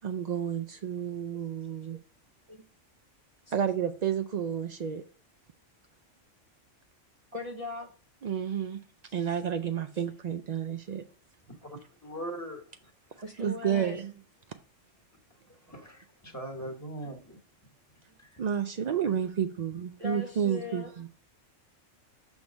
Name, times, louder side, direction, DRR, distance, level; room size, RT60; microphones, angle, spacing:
voice 1, 0.0-2.0 3.5-5.0 8.2-8.8 9.1-11.0 13.4-14.1 18.4-21.1, right 8 dB, 90° right, 0.3 m, -31 dB
voice 2, 7.3-7.9 13.2-14.0 20.0-20.9, left 2 dB, 35° right, 0.6 m, -39 dB
voice 3, 11.6-13.2 15.5-17.4 18.2-18.4, right 1 dB, 15° left, 1.2 m, -41 dB
6.1 x 3.5 x 5.2 m
omnidirectional pair, 1.3 m